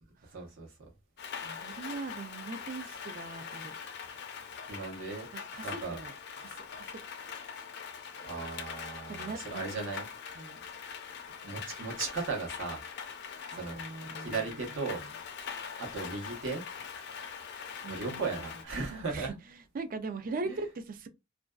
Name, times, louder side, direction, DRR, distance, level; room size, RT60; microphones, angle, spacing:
voice 1, 0.3-0.7 4.7-5.3 5.6-6.0 8.2-10.1 11.4-12.8 13.5-13.8 14.2-15.3 15.8-16.6 17.9-19.3 20.4-20.6, right 4 dB, 75° right, 0.9 m, -36 dB
Rain, 1.2-18.6, left 6 dB, 55° left, 0.4 m, -43 dB
voice 2, 1.4-3.7 5.3-7.1 9.1-9.9 10.3-10.6 13.5-15.1 17.8-18.6 19.1-21.1, right 3 dB, 45° right, 0.4 m, -41 dB
2.4 x 2.2 x 2.2 m
head